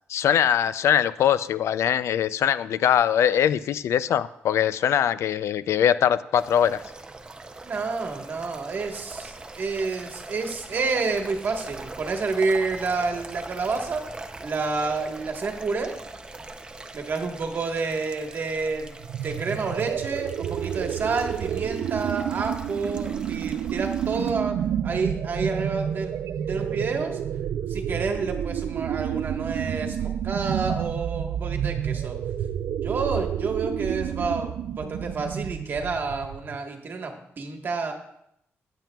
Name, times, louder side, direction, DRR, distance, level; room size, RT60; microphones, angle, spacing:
voice 1, 0.1-6.8, left 9 dB, 80° left, 15 dB, 0.4 m, -22 dB
sound 1, 6.3-24.3, right 2 dB, 20° right, 0.5 m, -42 dB
voice 2, 7.6-14.1 14.4-16.0 16.9-26.2 26.5-27.2 27.7-32.2 32.8-37.9, right 4 dB, 45° right, 3 dB, 1.3 m, -29 dB
sound 2, 19.0-36.6, right 9 dB, 80° right, 0.3 m, -30 dB
15.0 x 8.9 x 2.3 m, 0.76 s
wide cardioid pair, 150°, 5 cm